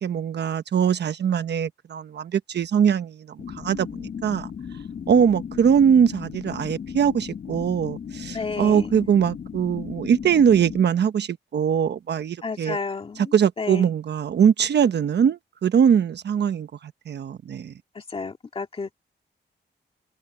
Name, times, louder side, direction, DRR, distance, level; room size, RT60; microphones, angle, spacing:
voice 1, 0.0-4.5 5.1-12.8 13.3-17.7, right 8 dB, 70° right, 1.1 m, -22 dB
sound 1, 3.4-10.8, left 7 dB, 55° left, 1.0 m, -36 dB
voice 2, 8.3-8.9 12.4-13.9 17.9-18.9, left 4 dB, 30° left, 2.3 m, -32 dB
wide cardioid pair, 170°, 18 cm